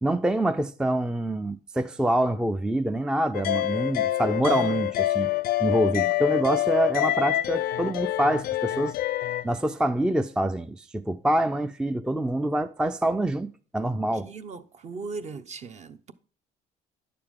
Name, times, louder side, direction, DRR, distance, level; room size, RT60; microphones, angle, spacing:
voice 1, 0.0-5.3 5.6-8.9 9.4-14.3, right 1 dB, 5° right, 0.4 m, -26 dB
sound 1, 3.3-9.4, left 14 dB, 65° left, 0.4 m, -26 dB
voice 2, 14.3-14.6 14.8-16.1, right 4 dB, 40° right, 0.8 m, -37 dB
10.5 x 6.8 x 3.6 m
cardioid pair, 110°, 17 cm